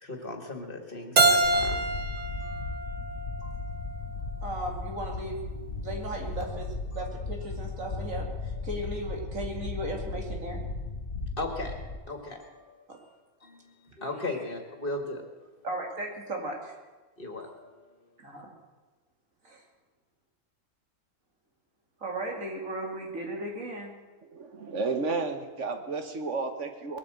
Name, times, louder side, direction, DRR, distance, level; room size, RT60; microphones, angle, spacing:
voice 1, 0.0-2.5 3.4-3.5 4.4-4.5 5.5-5.9 11.4-11.7 12.1-13.0 13.4-15.2 17.2-17.7, left 2 dB, 45° left, 4 dB, 2.2 m, -38 dB
Keyboard (musical), 1.2-4.0, right 2 dB, 35° right, 1.0 m, -26 dB
sound 1, 1.4-12.0, left 3 dB, 60° left, 1.5 m, -36 dB
voice 2, 4.4-5.4 5.8-10.6 12.9-13.0 14.3-14.4 15.6-16.7 18.2-18.5 19.4-19.6 22.0-23.9, right 1 dB, 85° right, 1 dB, 2.9 m, -36 dB
voice 3, 24.2-27.0, right 4 dB, 70° right, 6 dB, 1.5 m, -32 dB
20.5 x 8.6 x 7.7 m, 1.3 s
omnidirectional pair, 1.3 m